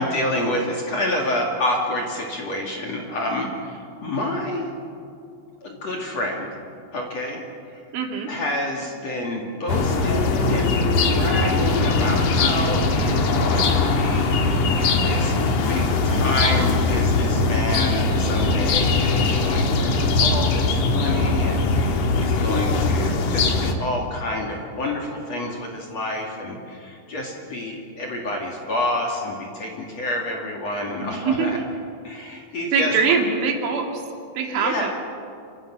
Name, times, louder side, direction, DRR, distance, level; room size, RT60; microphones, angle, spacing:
voice 1, 0.0-4.7 5.6-6.5 6.9-7.8 8.3-14.4 15.0-15.4 15.7-31.6 32.0-33.1 34.4-34.9, left 1 dB, 40° left, -1 dB, 3.0 m, -28 dB
voice 2, 7.9-8.3 31.0-31.6 32.7-34.0 34.4-34.9, right 5 dB, 80° right, 2 dB, 4.8 m, -23 dB
sound 1, 9.7-23.7, left 3 dB, 55° left, 2.3 m, -21 dB
28.5 x 25.5 x 6.2 m, 2.4 s
omnidirectional pair, 5.5 m